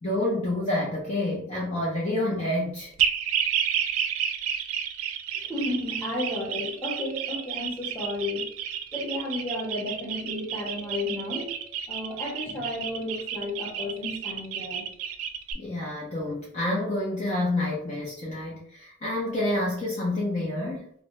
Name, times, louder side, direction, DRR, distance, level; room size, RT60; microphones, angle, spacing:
voice 1, 0.0-2.9 15.5-20.9, left 1 dB, 30° left, -5 dB, 0.5 m, -28 dB
sound 1, 3.0-15.5, right 8 dB, 70° right, 0.3 m, -30 dB
voice 2, 5.3-8.5 8.9-11.6 11.9-14.9, left 2 dB, 10° left, -4 dB, 0.8 m, -32 dB
2.5 x 2.1 x 2.9 m, 0.64 s
head